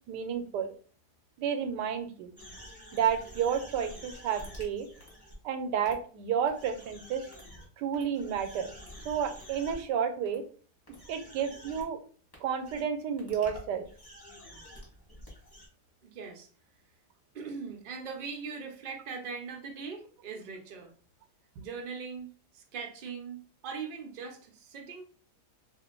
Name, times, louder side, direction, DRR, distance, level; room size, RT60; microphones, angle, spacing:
voice 1, 0.1-0.7 1.4-2.3 2.9-4.9 5.4-7.2 7.8-8.7 9.0-10.4 11.1-12.0 12.4-13.9, right 8 dB, 90° right, 8 dB, 1.2 m, -31 dB
sound 1, 2.4-5.4 5.8-5.9 6.5-7.6 7.9-9.8 10.3-10.4 10.9-11.8 12.3-12.4 12.6-12.8 13.2-15.7, equal, 15° left, 0.9 m, -48 dB
voice 2, 16.0-16.5 17.3-20.9 21.6-25.0, right 5 dB, 60° right, 2 dB, 0.5 m, -41 dB
2.7 x 2.5 x 3.6 m, 0.41 s
omnidirectional pair, 1.8 m